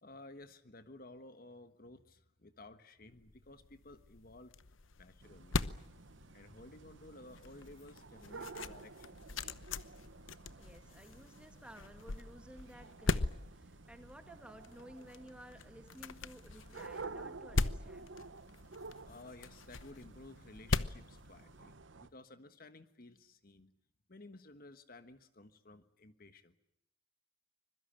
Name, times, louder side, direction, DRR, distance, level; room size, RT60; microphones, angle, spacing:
voice 1, 0.0-4.6 5.0-5.5 6.3-9.3 10.0-10.5 19.1-23.7 24.1-26.6, left 2 dB, 50° left, 10 dB, 1.4 m, -55 dB
sound 1, 3.2-22.0, left 3 dB, 85° left, 0.9 m, -41 dB
sound 2, 5.2-22.1, right 3 dB, 70° right, 1.0 m, -52 dB
voice 2, 10.6-18.1, equal, 5° right, 8 dB, 1.9 m, -55 dB
25.0 x 22.5 x 8.9 m, 0.78 s
head